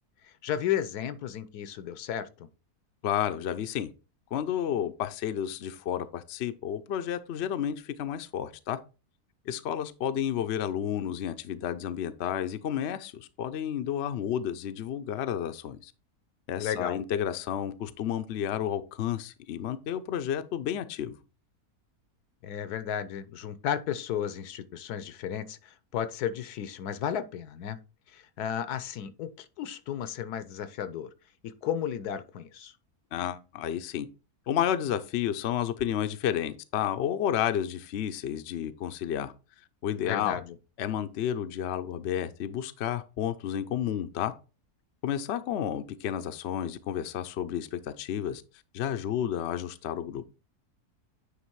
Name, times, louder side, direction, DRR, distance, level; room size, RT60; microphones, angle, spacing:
voice 1, 0.2-2.5 16.6-17.0 22.4-27.8 28.1-31.1 31.6-32.7 40.0-40.5, left 9 dB, 80° left, 1.2 m, -33 dB
voice 2, 3.0-3.9 4.3-8.8 9.5-15.9 16.5-21.2 33.1-34.1 34.5-39.3 39.8-40.4 40.8-44.3 45.0-48.4 48.7-50.2, left 10 dB, 60° left, 0.7 m, -31 dB
9.8 x 3.3 x 4.6 m
omnidirectional pair, 1.7 m